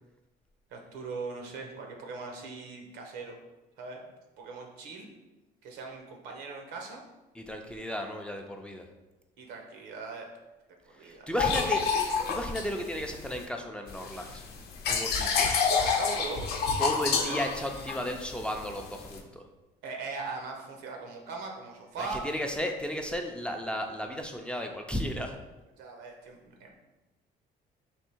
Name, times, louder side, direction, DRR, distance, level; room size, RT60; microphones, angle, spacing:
voice 1, 0.7-3.4 3.8-4.0 4.4-5.1 5.6-7.0 9.4-10.4 10.9-11.8 15.4-15.5 15.8-16.5 17.2-17.4 19.8-22.3 25.8-26.8, right 4 dB, 90° right, 2 dB, 0.8 m, -40 dB
voice 2, 7.3-8.9 11.0-11.8 12.3-14.4 14.9-15.5 16.8-19.4 22.0-25.4, equal, 5° left, 3 dB, 0.4 m, -34 dB
sound 1, 11.4-13.5 13.9-19.2, left 5 dB, 70° left, 0.6 m, -29 dB
3.5 x 2.6 x 4.3 m, 1.1 s
cardioid pair, 110°, 17 cm